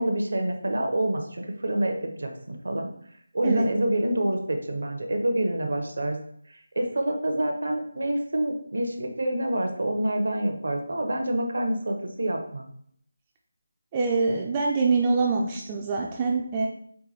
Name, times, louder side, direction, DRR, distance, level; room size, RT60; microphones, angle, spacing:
voice 1, 0.0-2.9 3.3-6.2 6.8-12.7, right 1 dB, 65° right, 4 dB, 0.6 m, -27 dB
voice 2, 13.9-16.7, right 4 dB, 20° right, -1 dB, 0.3 m, -24 dB
4.5 x 2.2 x 2.7 m, 0.65 s
figure-of-eight pair, 160°, 0 cm